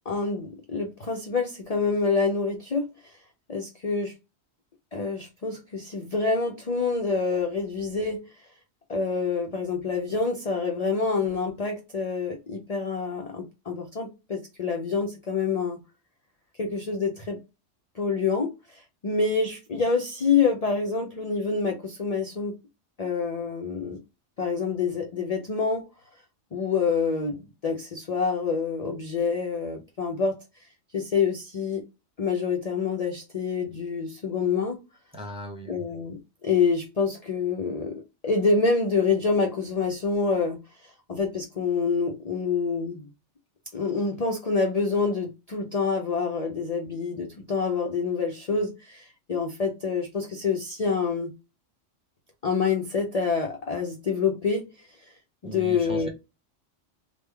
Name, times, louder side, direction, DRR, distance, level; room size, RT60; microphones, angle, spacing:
voice 1, 0.1-3.2 3.5-4.1 4.9-8.3 8.9-15.8 16.6-17.4 18.0-22.5 23.0-24.0 24.4-25.9 26.5-30.4 30.9-31.8 32.2-34.8 35.7-43.1 43.7-51.3 52.4-55.1 55.4-56.1, left 5 dB, 45° left, 0.5 m, -27 dB
voice 2, 35.1-35.9 55.4-56.1, right 1 dB, 5° right, 0.8 m, -38 dB
3.5 x 2.3 x 3.3 m
omnidirectional pair, 1.3 m